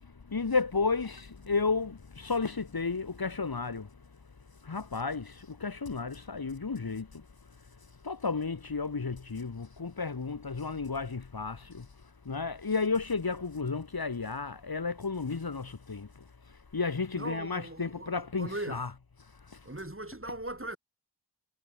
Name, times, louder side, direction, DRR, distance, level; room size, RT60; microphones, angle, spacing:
voice 1, 0.0-3.9 4.6-7.3 8.0-11.9 12.3-16.2 16.7-19.0 19.5-19.7, left 4 dB, 55° left, 1.6 m, -33 dB
voice 2, 17.1-18.8 19.6-20.8, right 1 dB, 30° right, 7.8 m, -39 dB
wide cardioid pair, 40°, 43 cm